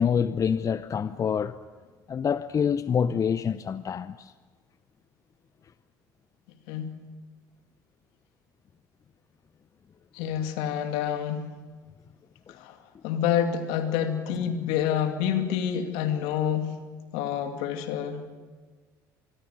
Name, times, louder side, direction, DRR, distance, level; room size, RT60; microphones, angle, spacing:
voice 1, 0.0-1.6 2.1-4.3, left 7 dB, 35° left, 0.7 m, -26 dB
voice 2, 10.1-11.5 12.5-12.8 13.0-16.7 17.1-18.3, left 9 dB, 70° left, 2.4 m, -28 dB
25.5 x 21.5 x 6.9 m
hypercardioid pair, 65°, 10 cm